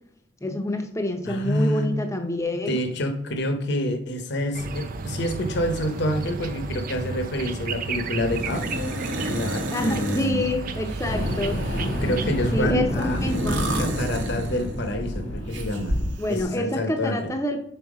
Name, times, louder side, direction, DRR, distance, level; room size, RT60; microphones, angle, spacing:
voice 1, 0.4-2.8 9.7-11.6 12.5-13.6 16.2-17.6, left 1 dB, 15° left, 5 dB, 0.7 m, -27 dB
voice 2, 1.3-1.9 2.7-8.6 8.9-10.5 12.0-13.2 13.8-16.0 16.3-17.3, equal, 60° left, 6 dB, 0.8 m, -27 dB
sound 1, 4.5-12.7, right 3 dB, 45° right, 0.5 m, -32 dB
sound 2, 8.3-10.3 10.9-12.2 12.9-15.0 15.5-16.4, right 1 dB, 65° right, 1.0 m, -31 dB
Fire, 10.9-16.2, equal, 90° left, 1.5 m, -29 dB
5.5 x 4.3 x 4.9 m, 0.73 s
head